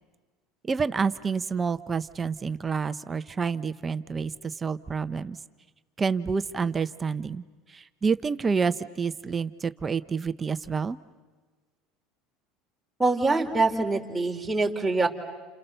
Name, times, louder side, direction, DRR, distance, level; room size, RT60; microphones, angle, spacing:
voice 1, 0.6-5.4 6.0-7.4 7.7-11.0, right 5 dB, 25° right, 13 dB, 0.9 m, -28 dB
voice 2, 13.0-15.1, right 3 dB, 10° right, 0 dB, 3.5 m, -24 dB
30.0 x 29.0 x 6.9 m, 1.3 s
supercardioid pair, 100°, 0 cm